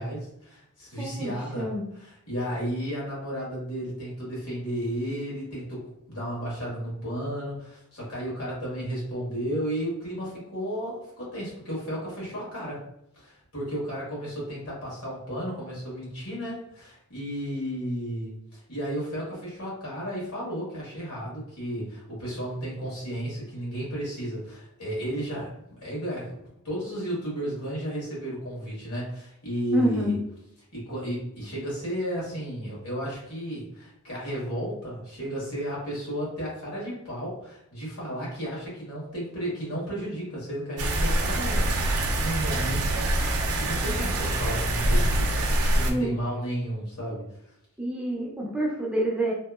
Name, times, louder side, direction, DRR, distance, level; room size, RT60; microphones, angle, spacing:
voice 1, 0.0-1.7 2.0-12.8 13.2-25.5 25.8-26.4 26.6-30.2 30.7-43.1 43.4-47.2, equal, 80° left, -5 dB, 1.4 m, -33 dB
voice 2, 1.0-1.8 29.7-30.2 45.9-46.2 47.8-49.3, right 1 dB, 5° right, -3 dB, 0.4 m, -27 dB
sound 1, 40.8-45.9, right 1 dB, 80° right, 0.5 m, -25 dB
2.8 x 2.3 x 2.3 m, 0.80 s
head